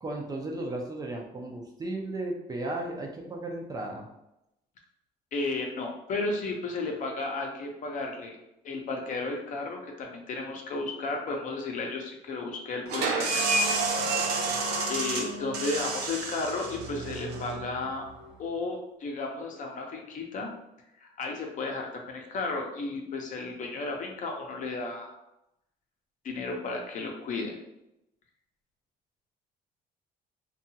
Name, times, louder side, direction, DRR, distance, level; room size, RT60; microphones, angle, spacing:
voice 1, 0.0-4.1, right 2 dB, 20° right, 0 dB, 0.4 m, -35 dB
voice 2, 5.3-8.4 8.6-13.4 14.9-18.0 18.4-20.5 21.0-25.2 26.2-27.6, left 3 dB, 50° left, 1 dB, 0.6 m, -33 dB
sound 1, 12.9-18.3, right 3 dB, 75° right, 0.5 m, -30 dB
2.7 x 2.3 x 2.7 m, 0.87 s
cardioid pair, 110°, 17 cm